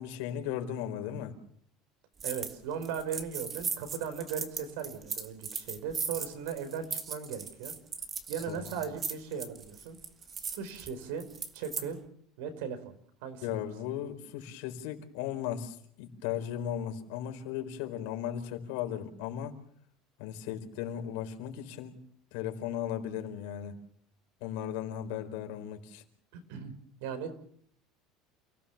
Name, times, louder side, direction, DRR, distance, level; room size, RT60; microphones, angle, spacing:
voice 1, 0.0-1.3 8.5-8.8 13.4-19.5 20.2-22.0 22.3-23.7 24.4-26.0, left 10 dB, 75° left, 4 dB, 4.4 m, -36 dB
sound 1, 2.2-2.6 2.8-11.9, right 6 dB, 20° right, 1.6 m, -38 dB
voice 2, 2.2-7.7 8.3-10.0 10.5-11.3 11.5-12.0 12.4-12.9 13.2-13.6 26.3-26.7 27.0-27.4, right 7 dB, 85° right, 9 dB, 4.8 m, -38 dB
29.5 x 17.5 x 7.2 m, 0.64 s
cardioid pair, 170°, 0 cm